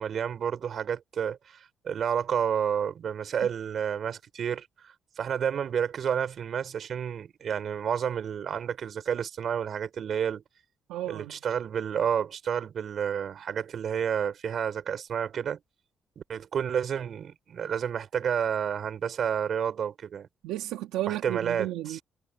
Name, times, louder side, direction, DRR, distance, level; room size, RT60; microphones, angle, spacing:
voice 1, 0.0-10.4 11.1-15.6 16.2-20.3 21.1-22.0, right 8 dB, 60° right, 4.7 m, -30 dB
voice 2, 10.9-11.4 20.4-22.0, right 14 dB, 90° right, 2.1 m, -33 dB
supercardioid pair, 65°, 0 cm